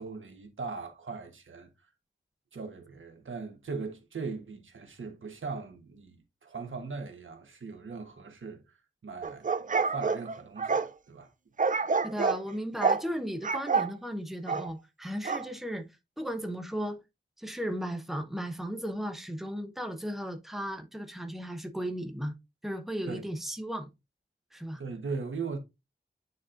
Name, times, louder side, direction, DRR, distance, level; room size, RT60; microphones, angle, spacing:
voice 1, 0.0-1.7 2.5-8.6 9.0-9.5 9.8-11.3 23.1-23.2 24.8-25.6, right 4 dB, 85° right, 1.2 m, -39 dB
sound 1, 9.2-10.9 11.6-12.4 12.8-13.1 13.4-13.9 14.5-14.7 15.3-15.5, right 4 dB, 40° right, 0.5 m, -28 dB
voice 2, 12.0-15.9 16.2-17.0 17.4-22.3 22.6-23.9 24.5-24.8, equal, ahead, 0.9 m, -35 dB
9.4 x 4.2 x 2.5 m
wide cardioid pair, 80°, 20 cm